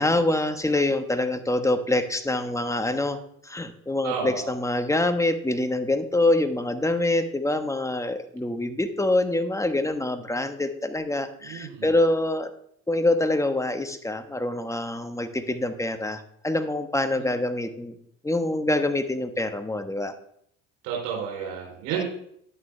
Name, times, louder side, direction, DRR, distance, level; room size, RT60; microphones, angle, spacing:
voice 1, 0.0-12.5 12.9-17.9 18.2-20.1 22.0-22.1, left 2 dB, 10° left, 8 dB, 1.3 m, -25 dB
voice 2, 4.0-4.5 11.4-11.9 17.2-17.3 20.8-22.0, right 7 dB, 75° right, -2 dB, 3.7 m, -31 dB
11.0 x 9.5 x 3.4 m, 0.69 s
hypercardioid pair, 65°, 38 cm